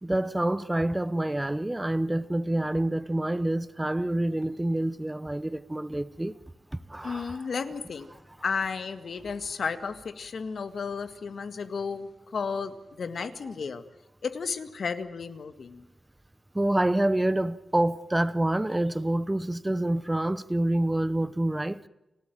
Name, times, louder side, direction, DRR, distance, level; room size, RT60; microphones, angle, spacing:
voice 1, 0.0-6.3 6.7-7.5 16.5-21.8, right 1 dB, 15° right, 0.9 m, -27 dB
voice 2, 7.0-8.1 8.4-13.8 14.2-15.8, left 5 dB, 70° left, 1.8 m, -33 dB
30.0 x 12.5 x 9.2 m
wide cardioid pair, 120°, 0 cm